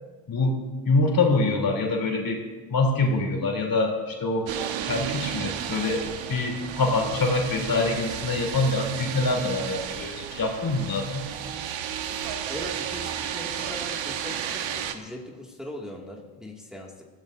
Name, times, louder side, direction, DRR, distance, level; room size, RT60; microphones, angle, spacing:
voice 1, 0.3-0.6 0.8-2.4 2.7-4.5 4.8-6.0 6.3-11.3, left 3 dB, 45° left, 1 dB, 3.3 m, -25 dB
sound 1, 4.5-15.0, right 9 dB, 75° right, 1.2 m, -33 dB
voice 2, 12.5-17.0, left 1 dB, ahead, -3 dB, 2.2 m, -40 dB
22.0 x 15.0 x 2.7 m, 1.3 s
supercardioid pair, 75°, 46 cm